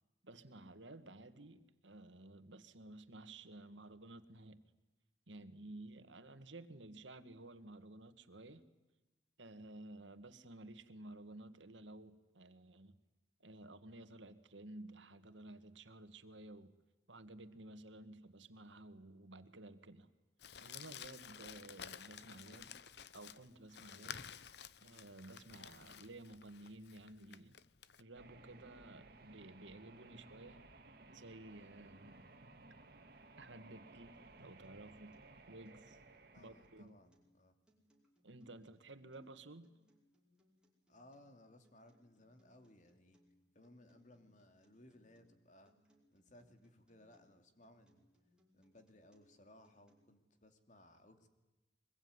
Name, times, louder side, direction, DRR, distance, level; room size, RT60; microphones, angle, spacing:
voice 1, 0.2-4.6 5.3-8.6 9.4-13.0 13.4-16.7 17.1-20.1 20.6-22.7 23.1-24.2 24.8-27.5 28.0-30.6 31.1-32.3 33.1-35.2 35.5-36.0 36.4-37.0 38.2-39.7, right 2 dB, 85° right, 10 dB, 1.9 m, -54 dB
Crumpling crinkling, 20.4-28.0, left 8 dB, 60° left, 0.9 m, -52 dB
sound 1, 28.1-36.8, right 2 dB, 55° right, 2.3 m, -59 dB
Acoustic guitar, 34.1-50.1, left 1 dB, 5° right, 5.3 m, -75 dB
voice 2, 36.3-37.5 40.9-43.2 43.5-45.7 46.1-48.1 48.5-51.3, left 1 dB, 40° left, 7 dB, 2.8 m, -63 dB
24.0 x 21.5 x 9.7 m, 1.1 s
head